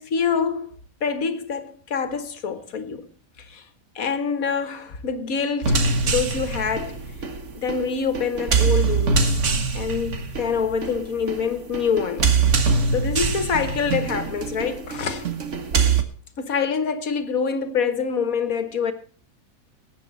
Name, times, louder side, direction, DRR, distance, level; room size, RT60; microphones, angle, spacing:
voice 1, 0.0-3.1 3.4-3.7 4.0-7.0 7.5-9.3 9.7-12.3 12.6-15.3 16.4-18.9, left 6 dB, 75° left, 1.9 m, -26 dB
sound 1, 5.6-16.0, right 5 dB, 60° right, 1.7 m, -23 dB
20.0 x 9.1 x 4.1 m
omnidirectional pair, 1.5 m